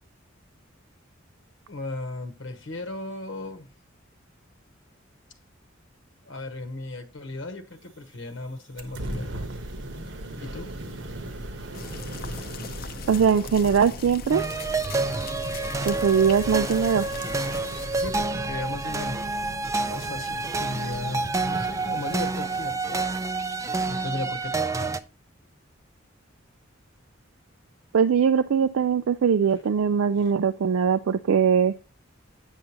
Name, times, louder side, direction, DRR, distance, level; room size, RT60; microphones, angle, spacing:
voice 1, 1.7-3.7 6.3-9.3 10.4-10.7 17.9-19.2 19.6-23.1 23.8-25.0 30.2-30.3, left 2 dB, 70° left, 1.0 m, -36 dB
sound 1, 8.8-22.7, right 1 dB, 65° right, 1.1 m, -38 dB
sound 2, 11.7-17.9, left 6 dB, 50° left, 0.6 m, -41 dB
voice 2, 13.1-14.4 15.9-17.1 27.9-31.7, right 7 dB, 90° right, 0.4 m, -21 dB
sound 3, 14.3-25.0, right 3 dB, 15° right, 0.4 m, -29 dB
8.9 x 6.6 x 2.9 m
head